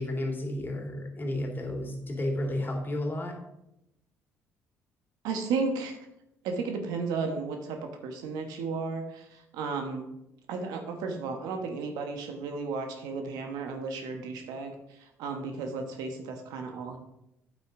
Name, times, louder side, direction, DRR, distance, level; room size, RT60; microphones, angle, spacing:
voice 1, 0.0-3.4, left 1 dB, 30° left, 1 dB, 2.7 m, -32 dB
voice 2, 5.2-6.0 6.4-10.1 10.5-17.0, right 4 dB, 75° right, 5 dB, 1.2 m, -34 dB
8.9 x 8.1 x 3.8 m, 0.85 s
hypercardioid pair, 60°, 7 cm